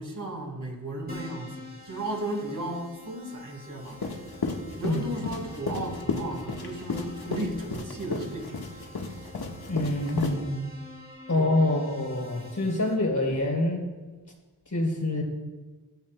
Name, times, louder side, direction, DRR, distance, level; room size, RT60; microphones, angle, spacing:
voice 1, 0.0-4.3 4.8-8.9 11.3-11.6, right 1 dB, 50° right, -1 dB, 4.1 m, -35 dB
Keyboard (musical), 1.1-12.9, left 2 dB, 20° right, 3.1 m, -47 dB
sound 1, 3.9-10.3, left 4 dB, 65° left, 1.5 m, -33 dB
voice 2, 9.7-10.6 11.3-13.9 14.7-15.2, left 2 dB, 45° left, 1 dB, 3.6 m, -26 dB
16.0 x 13.5 x 2.2 m, 1.3 s
cardioid pair, 55°, 41 cm